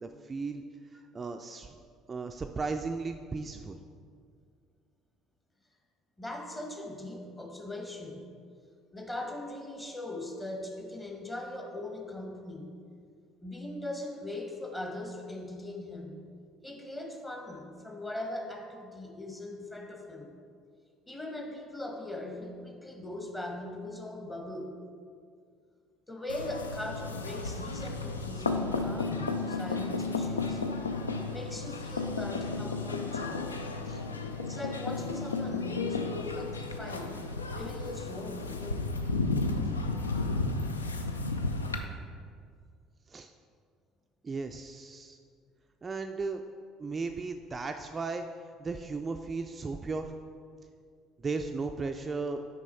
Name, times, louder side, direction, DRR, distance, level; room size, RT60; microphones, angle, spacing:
voice 1, 0.0-0.6 1.1-1.8 2.1-3.8 33.9-34.0 43.1-43.3 44.2-45.2 45.8-46.4 46.8-48.2 48.6-50.1 51.2-52.4, right 4 dB, 25° right, 5 dB, 0.3 m, -35 dB
voice 2, 6.2-8.3 8.9-12.7 13.4-16.2 16.6-20.3 21.1-24.8 26.1-30.6 31.3-33.4 34.4-39.0 50.5-50.6, left 1 dB, 15° left, 2 dB, 1.1 m, -40 dB
sound 1, 26.3-41.8, left 3 dB, 85° left, 0.3 m, -33 dB
6.1 x 5.3 x 4.2 m, 2.1 s
figure-of-eight pair, 60°, 0 cm